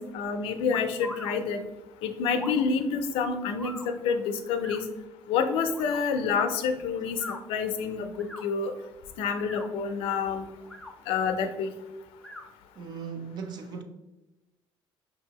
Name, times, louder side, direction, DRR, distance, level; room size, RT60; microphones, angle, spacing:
voice 1, 0.0-1.6 2.0-4.9 5.3-8.7 9.2-10.5 11.1-11.7, left 5 dB, 90° left, 0.5 m, -28 dB
sound 1, 0.7-1.3 2.3-2.6 3.6-3.9 4.6-4.8 5.7-6.0 7.1-7.4 8.1-8.4 9.3-9.7 10.6-10.9 12.2-12.4, left 1 dB, 5° left, 0.6 m, -41 dB
voice 2, 12.8-13.8, right 6 dB, 50° right, 0.5 m, -37 dB
5.1 x 2.7 x 2.8 m
cardioid pair, 115°, 9 cm